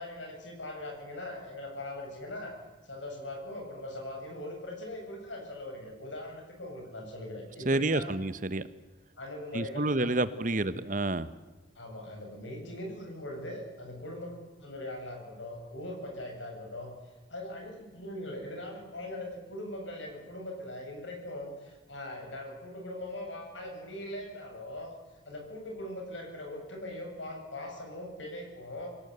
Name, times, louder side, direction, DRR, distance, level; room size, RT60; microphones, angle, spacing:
voice 1, 0.0-2.6 2.8-8.1 9.2-10.6 11.8-16.9 17.3-24.9 25.3-28.9, left 1 dB, 85° left, 3 dB, 7.6 m, -41 dB
voice 2, 7.6-8.6 9.5-11.3, right 2 dB, 45° right, 14 dB, 1.0 m, -29 dB
26.0 x 17.5 x 8.1 m, 1.2 s
head